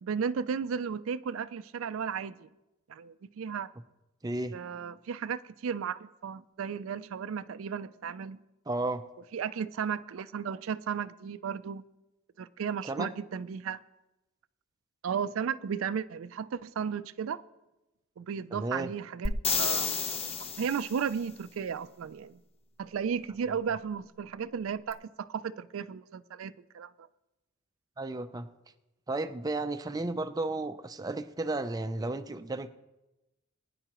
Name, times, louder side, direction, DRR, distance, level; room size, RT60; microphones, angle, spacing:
voice 1, 0.0-2.5 2.9-3.7 4.5-8.4 9.3-11.8 12.4-13.8 15.0-17.4 18.2-19.3 19.6-22.4 22.8-26.9, right 7 dB, 80° right, 0.4 m, -34 dB
voice 2, 4.2-4.5 8.7-9.0 12.8-13.1 18.5-18.9 28.0-28.5 29.1-32.7, right 2 dB, 20° right, 0.5 m, -33 dB
sound 1, 19.3-21.1 24.9-25.0, left 6 dB, 30° left, 0.7 m, -31 dB
21.5 x 9.9 x 3.0 m
head